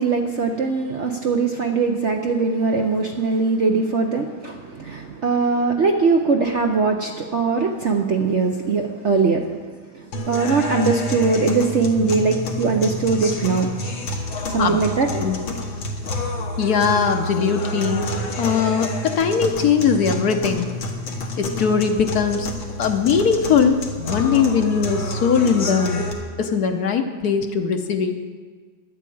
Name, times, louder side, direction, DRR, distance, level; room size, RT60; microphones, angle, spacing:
voice 1, 0.0-9.6 9.9-13.7 14.5-15.1, right 4 dB, 55° right, 2 dB, 0.8 m, -21 dB
sound 1, 10.1-26.1, left 1 dB, 90° left, 2.2 m, -28 dB
voice 2, 16.6-20.7 21.4-22.5 22.8-26.1 26.4-28.1, left 6 dB, 60° left, 6 dB, 1.2 m, -20 dB
11.0 x 8.4 x 8.6 m, 1.5 s
omnidirectional pair, 2.0 m